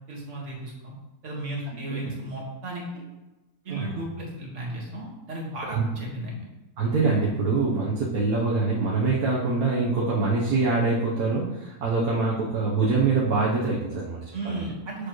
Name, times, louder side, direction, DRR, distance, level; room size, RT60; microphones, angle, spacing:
voice 1, 0.1-0.9 1.2-3.0 3.7-6.4 14.3-15.1, right 1 dB, 50° right, -3 dB, 2.1 m, -34 dB
voice 2, 3.7-4.0 5.7-5.9 6.8-14.2 14.4-14.6, right 3 dB, 70° right, -6 dB, 1.5 m, -24 dB
6.7 x 6.7 x 3.1 m, 1.1 s
omnidirectional pair, 1.7 m